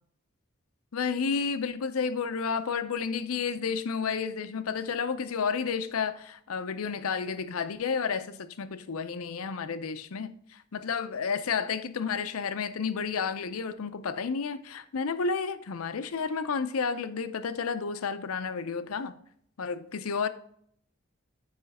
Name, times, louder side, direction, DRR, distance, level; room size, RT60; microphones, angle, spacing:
voice 1, 0.9-19.1 19.6-20.3, left 5 dB, 85° left, 0.6 m, -31 dB
7.9 x 5.0 x 4.1 m
head